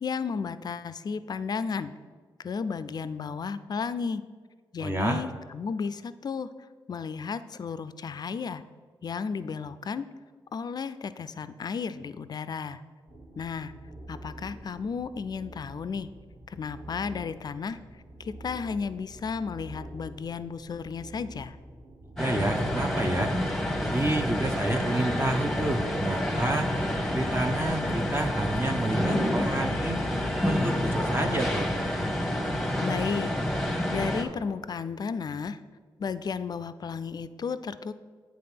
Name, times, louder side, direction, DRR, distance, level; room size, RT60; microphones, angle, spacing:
voice 1, 0.0-1.9 2.4-4.2 4.7-6.5 6.9-8.6 9.0-10.1 10.5-12.8 13.4-13.7 14.1-16.1 16.5-17.8 18.2-21.6 32.8-33.3 33.9-35.6 36.0-38.0, left 5 dB, 45° left, 13 dB, 0.4 m, -33 dB
voice 2, 4.8-5.2 22.2-23.3 23.8-26.7 27.1-30.0 30.3-31.7, right 2 dB, 25° right, 3 dB, 0.7 m, -29 dB
sound 1, 13.1-32.3, right 1 dB, 85° right, 2.1 m, -46 dB
sound 2, 22.2-34.2, left 1 dB, 5° left, 1.0 m, -28 dB
8.5 x 3.5 x 5.8 m, 1.5 s
cardioid pair, 60°, 9 cm